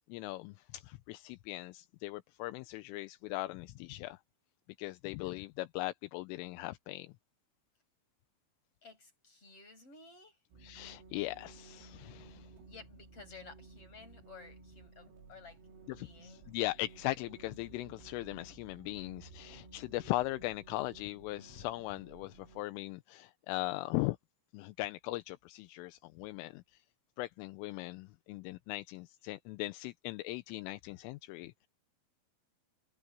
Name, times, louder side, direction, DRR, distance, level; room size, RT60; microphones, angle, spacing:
voice 1, 0.1-4.2 4.8-7.1 10.6-12.5 15.9-24.2 24.5-26.6 27.2-31.7, left 19 dB, 85° left, 3.2 m, -39 dB
voice 2, 8.8-10.4 12.7-15.6 15.9-16.5, left 4 dB, 25° left, 8.7 m, -54 dB
sound 1, 10.5-22.6, right 4 dB, 90° right, 7.3 m, -55 dB
omnidirectional pair, 5.9 m